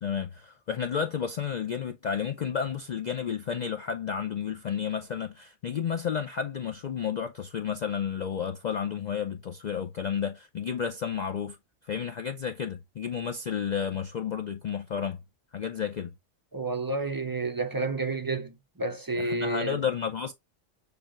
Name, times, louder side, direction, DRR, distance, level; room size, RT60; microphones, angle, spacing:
voice 1, 0.0-11.6 11.8-15.2 15.5-16.1 19.2-20.3, left 7 dB, 65° left, 0.4 m, -31 dB
voice 2, 16.5-19.8, right 3 dB, 35° right, 0.3 m, -30 dB
6.8 x 2.3 x 3.0 m
omnidirectional pair, 1.3 m